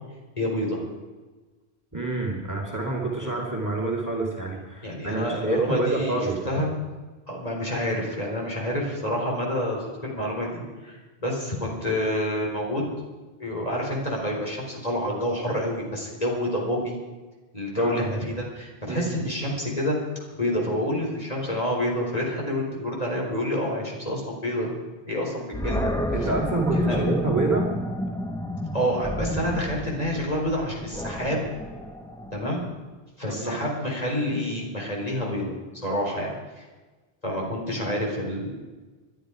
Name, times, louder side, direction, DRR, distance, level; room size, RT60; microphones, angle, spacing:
voice 1, 0.4-0.8 3.2-3.3 4.8-6.2 6.4-6.7 7.3-12.9 13.4-16.9 17.5-20.0 20.3-24.7 25.1-25.9 26.2-26.3 26.7-27.0 28.7-31.5 32.3-32.6 33.2-35.5 35.8-36.3 36.6-36.7 37.2-38.5, equal, 35° left, -2 dB, 3.9 m, -28 dB
voice 2, 1.9-6.4 17.7-18.2 18.8-19.1 26.1-27.7 33.3-33.6, right 2 dB, 15° right, -2 dB, 2.5 m, -27 dB
Animal, 25.5-32.6, left 1 dB, 5° left, 1.0 m, -30 dB
21.0 x 12.0 x 4.9 m, 1.3 s
omnidirectional pair, 1.1 m